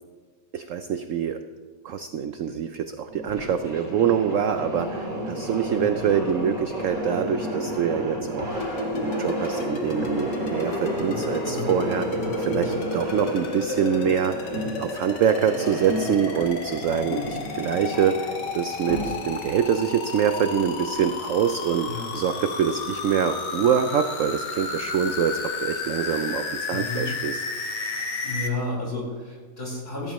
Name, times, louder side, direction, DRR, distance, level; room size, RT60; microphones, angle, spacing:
voice 1, 0.5-1.4 1.8-12.1 12.4-14.3 14.8-27.4, right 8 dB, 65° right, 8 dB, 0.8 m, -25 dB
sound 1, 3.1-19.4, equal, 25° right, 3.1 m, -32 dB
sound 2, 8.5-28.5, left 4 dB, 75° left, 1.9 m, -33 dB
voice 2, 26.7-27.1 28.2-30.1, left 2 dB, 30° left, -5 dB, 4.8 m, -31 dB
15.5 x 14.0 x 3.1 m, 1.5 s
omnidirectional pair, 1.9 m